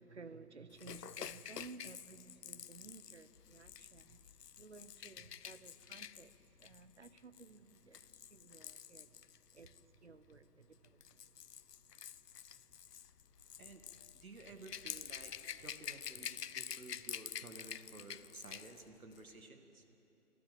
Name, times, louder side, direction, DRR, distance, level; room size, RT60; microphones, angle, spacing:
voice 1, 0.0-4.2 4.6-9.2 9.5-9.7 10.0-11.2, right 4 dB, 45° right, 0.8 m, -56 dB
Rattle / Rattle (instrument), 0.8-9.8 10.7-18.8 19.1-19.3, left 8 dB, 80° left, 0.7 m, -49 dB
voice 2, 14.1-19.8, right 3 dB, 65° right, 2.0 m, -54 dB
29.0 x 13.5 x 7.6 m
hypercardioid pair, 180°, 46 cm